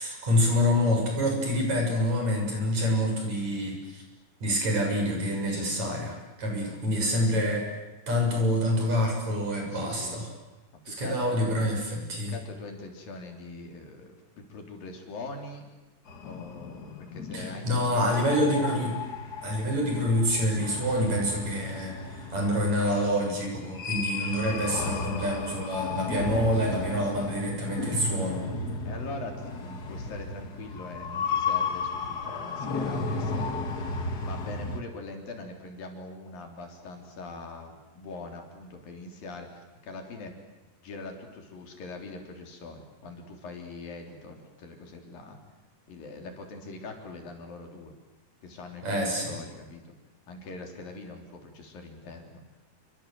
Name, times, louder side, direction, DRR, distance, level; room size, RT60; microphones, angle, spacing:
voice 1, 0.0-4.0 4.4-10.3 10.9-12.4 17.3-18.9 19.4-28.5 48.8-49.4, equal, 50° right, 1 dB, 8.1 m, -27 dB
voice 2, 5.3-5.9 9.7-10.2 10.8-11.4 12.3-15.6 16.2-18.9 28.9-33.7 34.2-40.3 40.8-45.4 45.9-47.9 48.4-50.0 50.3-52.4, left 3 dB, 70° left, 3 dB, 5.3 m, -42 dB
sound 1, 16.1-34.8, left 4 dB, 35° left, 1.7 m, -34 dB
28.0 x 25.5 x 7.9 m, 1.1 s
omnidirectional pair, 4.2 m